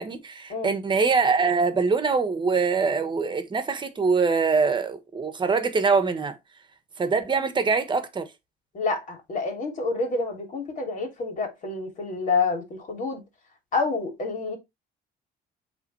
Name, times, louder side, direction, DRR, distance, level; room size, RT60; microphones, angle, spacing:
voice 1, 0.0-6.3 7.0-8.3, right 4 dB, 30° right, 1.4 m, -23 dB
voice 2, 8.7-13.2 13.7-14.6, left 4 dB, 50° left, 3.2 m, -28 dB
8.3 x 3.6 x 3.4 m
cardioid pair, 110°, 17 cm